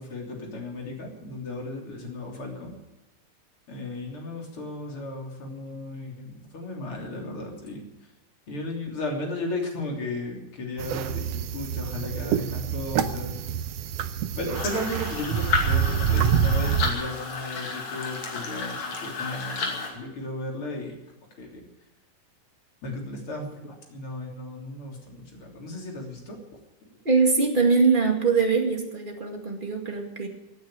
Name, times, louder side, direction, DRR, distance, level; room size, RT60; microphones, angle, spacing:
voice 1, 0.0-2.8 3.7-8.1 8.5-13.4 14.3-20.9 21.4-21.7 22.8-26.4, left 2 dB, 40° left, 1 dB, 3.9 m, -35 dB
sound 1, 10.8-16.9, right 8 dB, 85° right, 1.4 m, -26 dB
sound 2, 14.5-19.9, left 4 dB, 55° left, 3.6 m, -31 dB
voice 2, 27.0-30.3, right 4 dB, 20° right, 2 dB, 1.7 m, -22 dB
17.0 x 9.3 x 9.0 m, 1.0 s
omnidirectional pair, 4.0 m